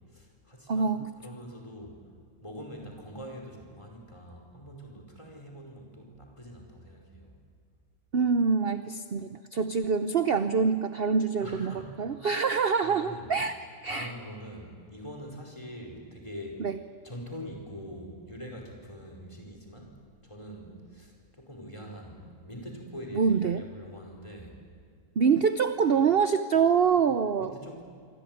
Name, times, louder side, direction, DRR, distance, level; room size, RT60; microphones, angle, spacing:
voice 1, 0.1-2.0 2.4-7.4 11.4-12.0 12.3-12.4 12.8-13.3 13.8-16.6 17.0-24.6 27.4-27.8, equal, 20° left, 1 dB, 5.2 m, -44 dB
voice 2, 0.7-1.1 8.1-14.1 16.6-16.8 23.1-23.6 25.2-27.5, right 6 dB, 45° right, 10 dB, 0.9 m, -25 dB
25.5 x 25.0 x 9.4 m, 2.2 s
omnidirectional pair, 1.6 m